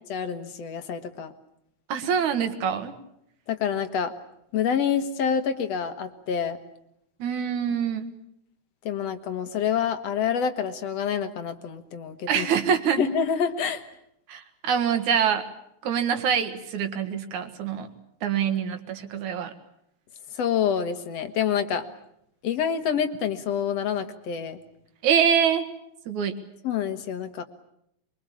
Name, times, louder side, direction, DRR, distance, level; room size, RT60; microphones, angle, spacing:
voice 1, 0.1-1.3 3.5-4.1 4.5-6.6 8.9-12.5 13.0-13.8 20.3-21.9 22.4-24.6 26.6-27.4, left 7 dB, 65° left, 9 dB, 2.4 m, -27 dB
voice 2, 1.9-2.9 7.2-8.1 12.3-13.0 14.3-15.4 15.8-17.9 18.2-19.5 25.0-25.6 26.1-26.4, right 7 dB, 85° right, 7 dB, 3.2 m, -25 dB
24.0 x 23.0 x 8.5 m, 0.75 s
omnidirectional pair, 3.3 m